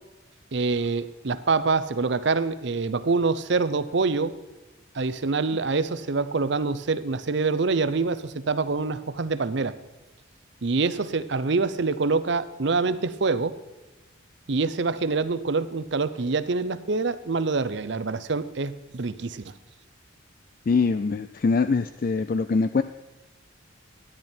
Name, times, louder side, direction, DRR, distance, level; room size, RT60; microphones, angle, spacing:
voice 1, 0.5-4.3 4.9-9.7 10.6-13.6 14.5-19.5, right 4 dB, 60° right, 14 dB, 0.6 m, -25 dB
voice 2, 20.7-22.8, left 4 dB, 45° left, 12 dB, 0.3 m, -23 dB
14.0 x 10.5 x 4.4 m, 1.2 s
head